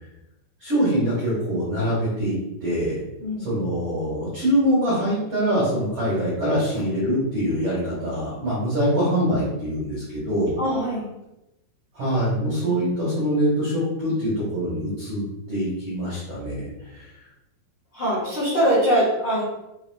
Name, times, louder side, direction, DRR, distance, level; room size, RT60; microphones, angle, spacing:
voice 1, 0.6-3.0 3.4-10.6 11.9-17.1, equal, 75° right, -8 dB, 1.4 m, -24 dB
voice 2, 3.2-3.6 10.6-11.1 17.9-19.4, equal, 70° left, -10 dB, 1.2 m, -22 dB
5.7 x 3.2 x 2.2 m, 0.94 s
omnidirectional pair, 4.7 m